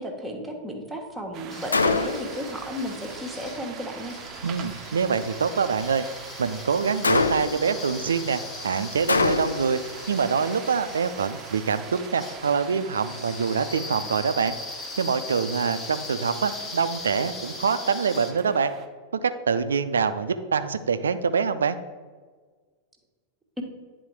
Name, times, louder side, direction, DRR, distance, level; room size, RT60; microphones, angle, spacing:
voice 1, 0.0-4.2 23.6-23.7, equal, 5° right, 0 dB, 1.2 m, -34 dB
sound 1, 1.3-18.9, right 8 dB, 35° right, 0.6 m, -43 dB
sound 2, 1.5-18.3, left 3 dB, 25° left, 0.9 m, -40 dB
Gunshot gunfire, 1.7-2.4 7.0-7.7 9.1-9.8, left 3 dB, 75° left, 0.3 m, -23 dB
voice 2, 4.4-6.0 6.4-9.8 10.1-14.6 15.0-18.7 19.1-21.8, right 6 dB, 70° right, 11 dB, 0.4 m, -25 dB
9.7 x 3.8 x 4.6 m, 1.5 s
figure-of-eight pair, 90°, 0 cm